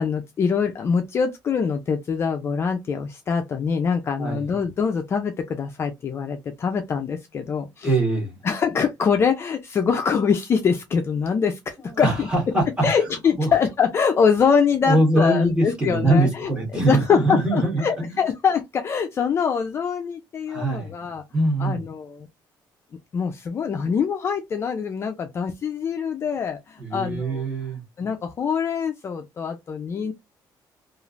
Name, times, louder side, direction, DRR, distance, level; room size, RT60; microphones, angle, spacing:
voice 1, 0.0-7.9 8.4-12.3 12.8-21.2 21.6-22.3 23.1-27.5 28.0-30.1, left 6 dB, 30° left, 0.4 m, -24 dB
voice 2, 4.2-4.5 7.8-8.4 11.9-12.9 13.4-13.6 14.8-18.1 20.5-21.1 21.3-21.8 26.8-27.8, right 1 dB, 10° right, 1.2 m, -22 dB
3.1 x 2.4 x 2.4 m
cardioid pair, 170°, 8 cm